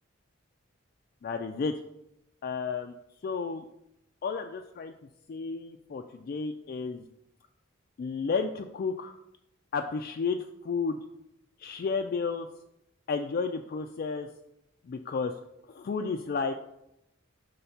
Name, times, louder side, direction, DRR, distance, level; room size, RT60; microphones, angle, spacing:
voice 1, 1.2-1.8 2.4-2.9 3.2-3.6 4.2-4.9 5.3-7.0 8.0-9.1 9.7-11.0 11.6-12.5 13.1-14.3 14.9-15.3 15.7-16.5, left 5 dB, 45° left, 5 dB, 0.3 m, -32 dB
5.5 x 3.3 x 5.7 m, 0.82 s
head